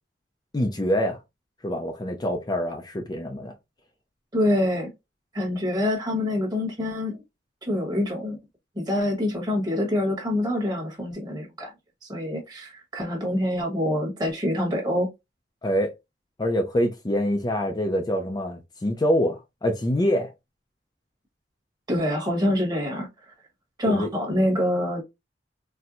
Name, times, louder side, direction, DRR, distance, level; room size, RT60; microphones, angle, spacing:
voice 1, 0.5-1.2 1.6-3.5 15.6-15.9 16.4-20.3 23.9-24.1, equal, 25° left, 0.4 m, -25 dB
voice 2, 4.3-4.9 5.3-7.2 7.6-8.4 8.7-11.7 12.0-15.1 21.9-23.1 23.8-25.0, left 1 dB, 25° right, 1.2 m, -25 dB
4.3 x 2.1 x 2.5 m
head